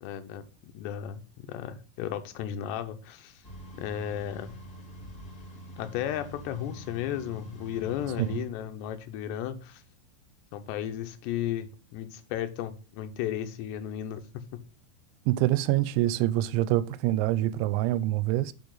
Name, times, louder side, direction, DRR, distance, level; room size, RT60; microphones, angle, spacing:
voice 1, 0.0-3.4 3.8-4.6 5.8-9.8 10.5-14.4, left 10 dB, 75° left, 2.9 m, -34 dB
sound 1, 3.4-8.4, right 1 dB, 25° left, 2.2 m, -46 dB
voice 2, 15.3-18.5, right 15 dB, 85° right, 2.9 m, -25 dB
6.9 x 6.4 x 3.9 m
omnidirectional pair, 5.3 m